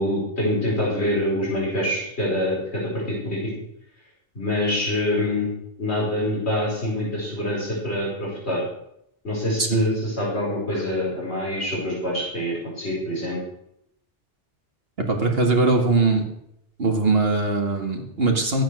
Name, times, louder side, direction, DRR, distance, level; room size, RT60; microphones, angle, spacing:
voice 1, 0.0-3.5 4.4-5.5 5.8-8.6 9.2-13.4, left 1 dB, 65° left, -5 dB, 5.2 m, -25 dB
voice 2, 15.1-16.3 16.8-18.6, right 3 dB, 55° right, 2 dB, 2.3 m, -21 dB
13.5 x 8.9 x 6.4 m, 0.77 s
omnidirectional pair, 1.2 m